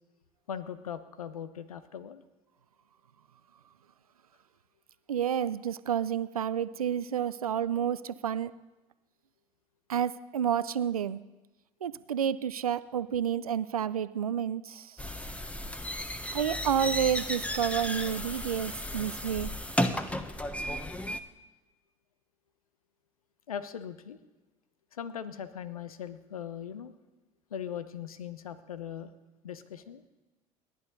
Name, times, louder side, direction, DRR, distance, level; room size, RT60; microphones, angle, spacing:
voice 1, 0.5-2.2 23.5-24.2 24.9-26.9 27.5-29.1 29.4-30.0, left 8 dB, 80° left, 14 dB, 0.9 m, -39 dB
voice 2, 5.1-8.5 9.9-11.2 11.8-15.0 16.3-19.5, right 9 dB, 85° right, 16 dB, 0.4 m, -30 dB
sound 1, 15.0-21.2, left 1 dB, 5° left, 1.2 m, -34 dB
30.0 x 11.0 x 3.9 m, 1.1 s
figure-of-eight pair, 65°, 18 cm